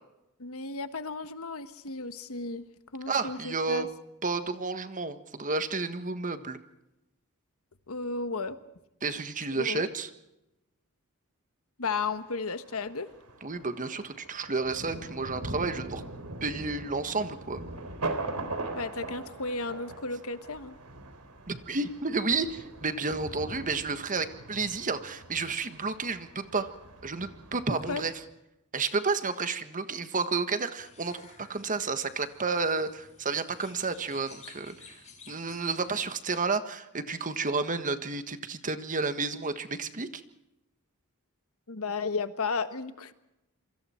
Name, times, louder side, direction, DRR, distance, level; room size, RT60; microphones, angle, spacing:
voice 1, 0.4-2.7 2.9-3.9 7.9-8.6 9.6-9.8 11.8-13.1 18.7-20.8 27.7-28.0 41.7-43.1, left 4 dB, 70° left, 11 dB, 1.4 m, -34 dB
voice 2, 3.1-3.9 4.2-6.6 9.0-10.1 13.4-16.0 16.4-17.6 21.5-26.7 27.0-28.1 28.7-34.9 35.3-40.2, right 4 dB, 35° right, 10 dB, 1.5 m, -31 dB
Thunder, 12.0-28.2, right 2 dB, 90° right, 3.5 m, -41 dB
sound 1, 30.8-36.1, left 5 dB, 30° left, 6.2 m, -54 dB
27.5 x 24.5 x 4.5 m, 0.91 s
head